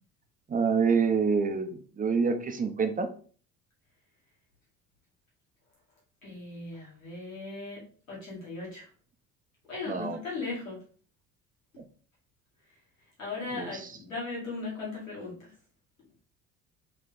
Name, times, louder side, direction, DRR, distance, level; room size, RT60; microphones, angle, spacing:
voice 1, 0.5-3.1 9.9-10.2 11.8-11.9 13.5-13.9, right 5 dB, 20° right, 7 dB, 0.7 m, -27 dB
voice 2, 6.2-7.8 8.1-8.9 9.7-10.8 13.2-15.5, left 3 dB, 90° left, -6 dB, 1.7 m, -37 dB
3.3 x 3.3 x 3.9 m, 0.43 s
figure-of-eight pair, 55°, 39 cm